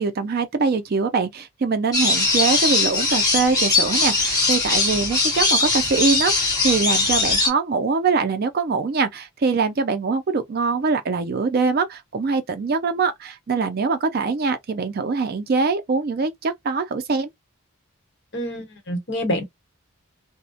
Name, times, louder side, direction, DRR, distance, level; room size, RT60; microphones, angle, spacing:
voice 1, 0.0-17.3, right 4 dB, 45° right, 0.4 m, -23 dB
sound 1, 1.9-7.5, left 3 dB, 15° left, 0.9 m, -20 dB
voice 2, 18.3-19.4, equal, 50° left, 1.0 m, -26 dB
2.3 x 2.1 x 2.6 m
head